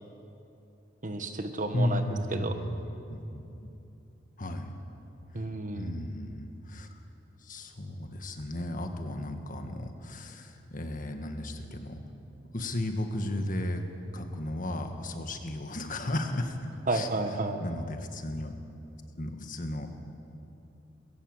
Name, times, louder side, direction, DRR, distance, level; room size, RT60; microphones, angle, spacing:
voice 1, 1.0-2.0 2.3-2.5 5.3-5.9 16.9-17.6, right 2 dB, 45° right, 7 dB, 1.4 m, -31 dB
voice 2, 1.7-3.7 4.4-4.7 5.3-7.0 7.4-12.0 12.5-13.8 14.1-16.6 16.9-17.1 17.6-18.5 19.2-19.9, left 1 dB, 50° left, 5 dB, 1.7 m, -34 dB
21.0 x 16.0 x 7.9 m, 2.8 s
head